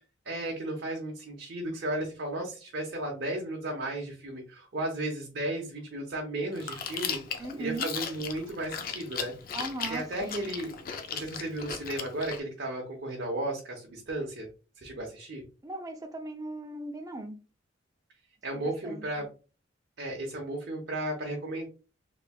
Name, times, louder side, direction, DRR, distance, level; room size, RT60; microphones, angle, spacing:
voice 1, 0.2-14.5 14.8-15.4 18.4-19.3 20.0-21.7, right 1 dB, 55° right, 0.8 m, -35 dB
Chewing mastication, 6.5-12.4, left 6 dB, 45° left, 0.4 m, -37 dB
voice 2, 7.4-7.9 9.5-10.5 15.6-17.4 18.5-19.3, right 2 dB, 15° right, 0.4 m, -39 dB
3.3 x 3.1 x 2.2 m
head